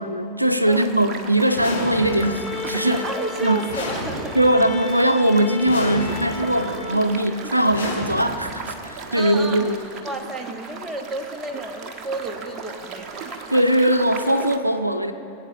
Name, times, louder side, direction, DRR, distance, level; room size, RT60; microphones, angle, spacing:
voice 1, 0.0-3.1 3.4-3.6 4.3-9.8 13.5-15.1, right 1 dB, 90° right, 9 dB, 0.6 m, -20 dB
sound 1, 0.7-14.6, right 5 dB, 30° right, 1.3 m, -37 dB
Bowed string instrument, 1.4-7.7, left 6 dB, 20° left, 1.7 m, -36 dB
sound 2, 1.6-2.4 3.7-4.6 5.7-6.5 7.7-8.6, left 2 dB, 75° left, 4.1 m, -31 dB
voice 2, 2.9-4.6 9.1-9.7 10.0-13.2, right 2 dB, 15° right, 4 dB, 1.4 m, -32 dB
23.0 x 8.7 x 6.7 m, 2.9 s
figure-of-eight pair, 90°, 0 cm